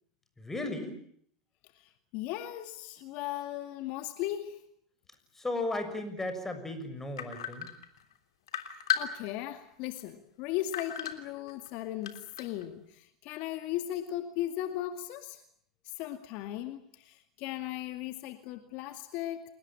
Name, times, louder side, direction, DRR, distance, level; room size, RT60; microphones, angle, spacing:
voice 1, 0.4-1.0 5.3-7.7, left 2 dB, 15° left, 6.8 m, -35 dB
voice 2, 1.8-4.6 8.9-15.4 15.8-19.4, left 13 dB, 60° left, 2.3 m, -37 dB
sound 1, 7.2-8.1 8.5-9.6 10.0-10.1 10.7-11.7 12.0-12.6, left 9 dB, 80° left, 3.3 m, -34 dB
29.5 x 19.0 x 8.8 m
hypercardioid pair, 90°, 3 cm